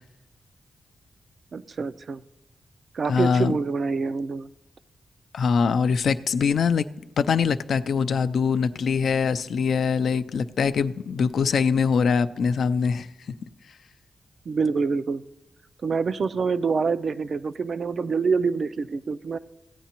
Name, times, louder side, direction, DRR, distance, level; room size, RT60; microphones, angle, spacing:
voice 1, 1.5-2.2 2.9-4.5 14.5-15.2 15.8-19.4, right 5 dB, 60° right, 13 dB, 0.4 m, -26 dB
voice 2, 3.0-3.6 5.3-6.9 7.2-13.1, left 6 dB, 80° left, 11 dB, 0.4 m, -23 dB
16.0 x 9.2 x 2.9 m, 0.99 s
wide cardioid pair, 95°, 0 cm